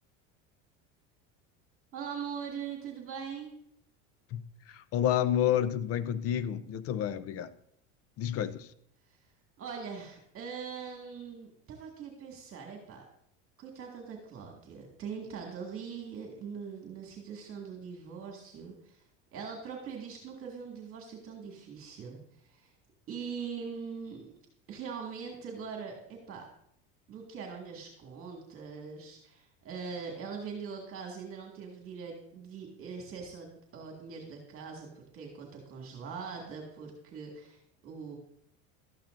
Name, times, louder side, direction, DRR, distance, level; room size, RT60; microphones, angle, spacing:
voice 1, 1.9-3.5 9.1-9.2 9.6-13.1 13.6-19.0 19.3-22.7 23.1-24.3 24.7-26.4 27.1-38.2, right 6 dB, 40° right, 2.1 m, -42 dB
voice 2, 4.3-7.5 8.2-8.7, left 10 dB, 45° left, 0.6 m, -30 dB
12.5 x 8.7 x 2.6 m
supercardioid pair, 120°, 35 cm